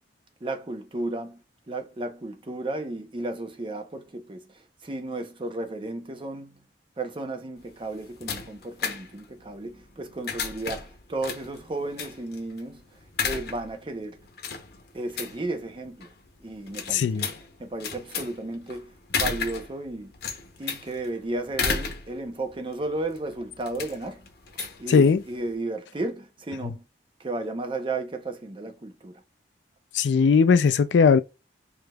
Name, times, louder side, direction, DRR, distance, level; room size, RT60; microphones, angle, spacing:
voice 1, 0.4-1.4 1.7-4.4 4.8-6.6 7.0-12.8 13.2-14.2 14.9-16.1 16.4-17.3 17.6-20.1 20.6-24.2 24.8-26.8 27.2-29.2, right 2 dB, 30° right, 0.6 m, -33 dB
sound 1, 7.6-25.5, left 5 dB, 60° left, 0.8 m, -35 dB
voice 2, 16.9-17.2 24.9-25.2 29.9-31.2, left 5 dB, 85° left, 0.4 m, -18 dB
4.9 x 2.9 x 2.3 m
head